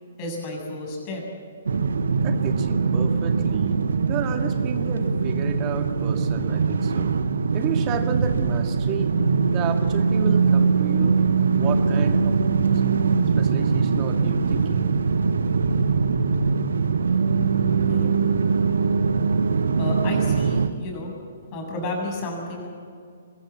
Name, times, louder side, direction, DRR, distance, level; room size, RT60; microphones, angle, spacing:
voice 1, 0.2-1.2 17.9-18.1 19.8-21.1 21.5-22.7, left 1 dB, 35° left, 0 dB, 7.4 m, -31 dB
sound 1, 1.7-20.7, right 5 dB, 70° right, 1.0 m, -22 dB
voice 2, 2.2-3.7 4.1-7.1 7.5-9.1 9.4-11.2 11.5-12.4 13.4-14.9, right 8 dB, 30° right, 5 dB, 2.1 m, -31 dB
24.5 x 14.5 x 8.4 m, 2.3 s
figure-of-eight pair, 125°, 0 cm